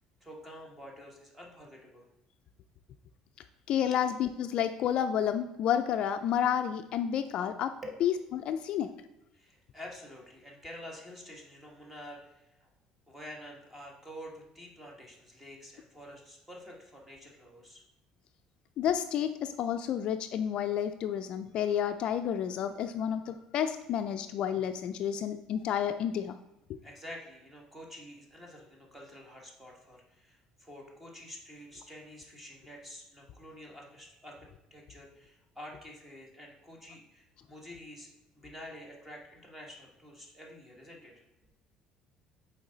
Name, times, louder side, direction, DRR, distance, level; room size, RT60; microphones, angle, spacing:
voice 1, 0.2-2.1 3.9-4.0 7.8-8.0 9.3-12.7 13.1-17.8 26.8-38.1 38.4-41.1, equal, 10° right, -1 dB, 1.2 m, -48 dB
voice 2, 3.7-7.7 8.0-8.9 18.8-26.4, left 9 dB, 50° left, 8 dB, 0.3 m, -30 dB
7.1 x 4.5 x 3.9 m, 0.90 s
cardioid pair, 160°, 2 cm